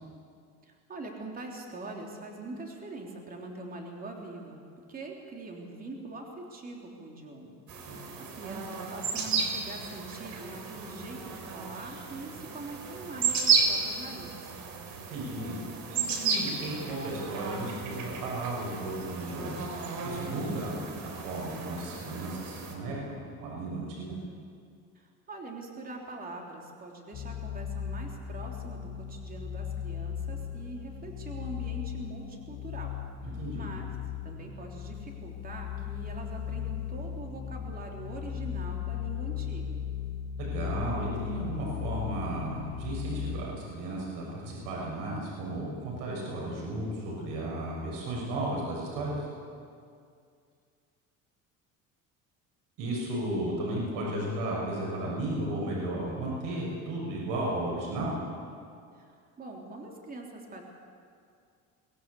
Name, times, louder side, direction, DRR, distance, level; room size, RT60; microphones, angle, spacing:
voice 1, 0.6-4.6 4.9-7.6 7.8-14.4 24.9-32.9 33.2-33.9 34.2-39.8 58.9-60.6, right 2 dB, 25° right, 1 dB, 3.4 m, -43 dB
sound 1, 7.7-22.8, right 5 dB, 60° right, 3.6 m, -33 dB
voice 2, 15.1-15.6 15.9-19.7 20.0-24.1 33.2-33.6 40.4-49.3 52.8-58.1, right 1 dB, 85° right, -3 dB, 7.1 m, -34 dB
sound 2, 27.1-43.5, left 9 dB, 55° left, 4.0 m, -37 dB
24.0 x 17.0 x 8.4 m, 2.3 s
cardioid pair, 145°, 32 cm